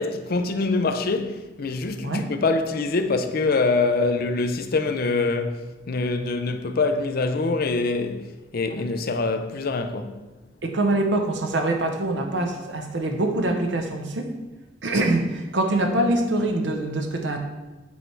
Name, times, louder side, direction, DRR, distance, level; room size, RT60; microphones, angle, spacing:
voice 1, 0.0-10.2, left 3 dB, 55° left, 0.5 m, -24 dB
voice 2, 10.6-14.3 14.8-17.4, right 1 dB, 75° right, 0.8 m, -24 dB
8.3 x 3.3 x 4.5 m
head